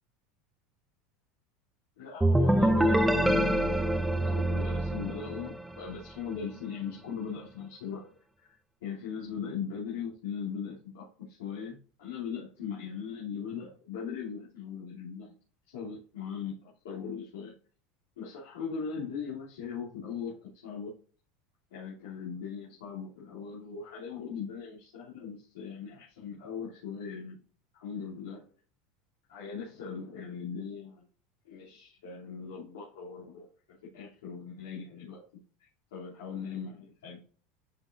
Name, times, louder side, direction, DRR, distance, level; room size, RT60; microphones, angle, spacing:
voice 1, 2.0-3.9 4.2-15.4 15.7-17.5 18.2-20.9 21.7-27.4 27.7-28.5 29.3-31.1 31.4-37.2, left 6 dB, 90° left, -7 dB, 3.0 m, -39 dB
sound 1, 2.2-5.9, right 1 dB, 5° right, 0.8 m, -25 dB
11.5 x 5.5 x 2.6 m, 0.40 s
supercardioid pair, 110°, 0 cm